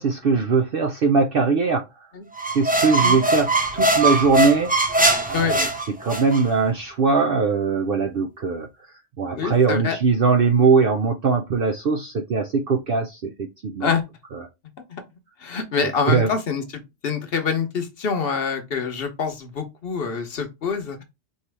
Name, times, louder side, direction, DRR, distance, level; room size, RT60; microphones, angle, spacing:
voice 1, 0.0-1.8 2.5-4.7 5.3-5.7 6.0-8.7 9.2-13.9 14.3-14.5 15.8-16.3, right 4 dB, 55° right, 0.7 m, -21 dB
sound 1, 2.4-6.4, right 2 dB, 10° right, 0.4 m, -21 dB
voice 2, 9.3-10.0 13.8-14.0 14.9-15.0 15.4-16.6 17.0-21.0, left 5 dB, 55° left, 1.0 m, -25 dB
4.5 x 3.0 x 3.4 m
omnidirectional pair, 1.3 m